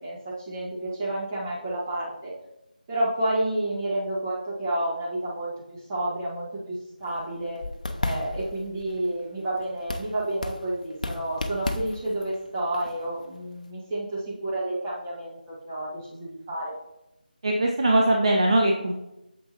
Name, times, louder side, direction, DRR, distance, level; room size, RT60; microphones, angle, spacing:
voice 1, 0.0-2.3 2.9-7.6 8.0-16.8, right 1 dB, 20° right, -6 dB, 1.7 m, -30 dB
sound 1, 7.0-13.7, left 2 dB, 50° left, 0.7 m, -35 dB
voice 2, 17.4-18.9, right 1 dB, 35° right, 1 dB, 0.7 m, -21 dB
9.0 x 7.1 x 2.9 m, 0.93 s
figure-of-eight pair, 160°, 5 cm